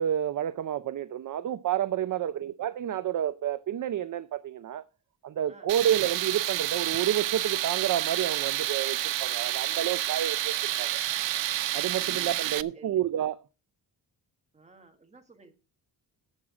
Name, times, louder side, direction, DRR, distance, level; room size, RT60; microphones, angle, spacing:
voice 1, 0.0-4.9 5.2-11.0 11.7-13.4, right 10 dB, 45° right, 0.5 m, -29 dB
Tools, 5.7-12.6, right 14 dB, 90° right, 0.6 m, -29 dB
voice 2, 11.7-13.3 14.5-15.5, right 3 dB, 15° right, 1.6 m, -54 dB
11.0 x 7.6 x 4.8 m
wide cardioid pair, 165°, 43 cm